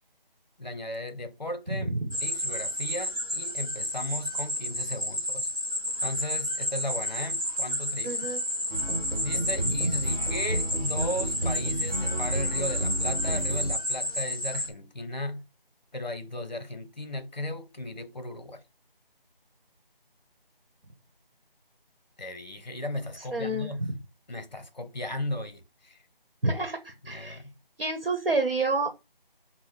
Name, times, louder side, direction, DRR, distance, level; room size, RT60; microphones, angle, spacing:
voice 1, 0.6-1.9 2.2-5.5 6.0-8.2 9.2-15.4 15.9-18.6 22.2-23.9 24.3-26.0 27.0-27.5, left 1 dB, 50° left, 0.7 m, -36 dB
voice 2, 1.7-2.1 8.0-8.4 9.6-9.9 23.3-23.9 26.4-27.4 27.8-29.1, right 2 dB, 70° right, 1.0 m, -29 dB
sound 1, 2.1-14.7, left 1 dB, 35° right, 0.9 m, -31 dB
sound 2, 8.7-13.7, right 1 dB, 25° left, 1.3 m, -31 dB
5.8 x 2.0 x 3.1 m
figure-of-eight pair, 180°, 29 cm